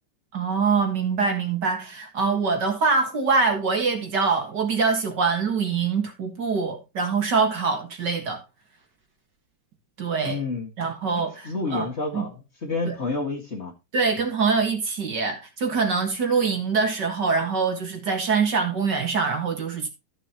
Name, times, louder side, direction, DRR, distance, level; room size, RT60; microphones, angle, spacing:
voice 1, 0.3-8.4 10.0-10.4 10.8-11.9 12.1-12.3 12.9-13.0 13.9-19.9, right 5 dB, 55° right, 2.3 m, -24 dB
voice 2, 10.2-10.7 11.4-13.7, left 3 dB, 30° left, 2.1 m, -29 dB
14.0 x 7.0 x 3.0 m
omnidirectional pair, 2.4 m